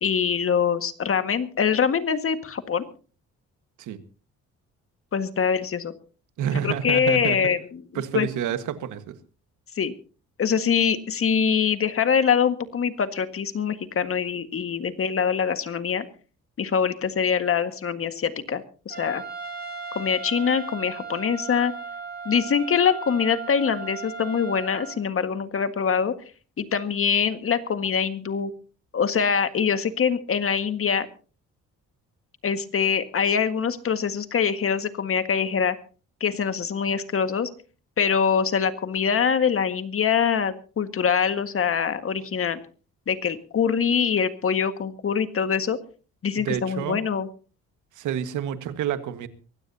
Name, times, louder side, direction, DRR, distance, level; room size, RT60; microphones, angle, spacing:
voice 1, 0.0-2.9 5.1-5.9 6.6-7.6 7.9-8.3 9.8-9.9 10.4-16.1 16.6-19.2 20.0-21.7 22.3-26.1 26.6-28.5 28.9-31.1 32.4-35.8 36.2-37.5 38.0-42.6 43.1-45.8 46.2-47.3, left 7 dB, 45° left, 9 dB, 1.7 m, -24 dB
voice 2, 6.4-7.5 7.9-9.2 46.4-47.0 48.0-49.3, right 9 dB, 80° right, 10 dB, 1.6 m, -29 dB
Trumpet, 18.9-25.0, right 4 dB, 30° right, 3.2 m, -37 dB
23.5 x 16.5 x 2.8 m, 0.37 s
cardioid pair, 90°, 30 cm